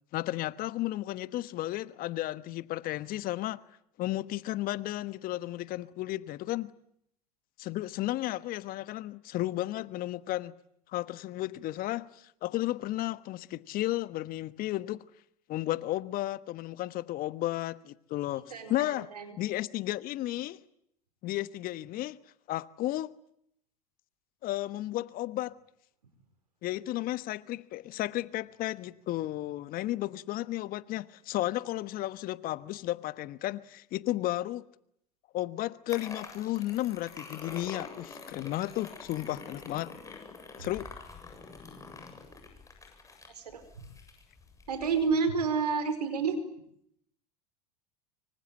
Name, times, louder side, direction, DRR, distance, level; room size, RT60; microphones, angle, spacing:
voice 1, 0.1-3.6 4.0-6.7 7.6-10.5 10.9-15.0 15.5-19.1 19.4-20.6 21.2-22.2 22.5-23.1 24.4-25.5 26.6-34.6 35.3-39.9 40.6-40.9, left 15 dB, 45° left, 1.2 m, -33 dB
voice 2, 18.5-19.3 40.6-40.7 43.3-43.9 44.7-46.4, right 5 dB, 90° right, 4.8 m, -30 dB
sound 1, 35.9-45.1, left 4 dB, 15° left, 7.8 m, -46 dB
25.5 x 24.5 x 8.8 m
hypercardioid pair, 85°, 20 cm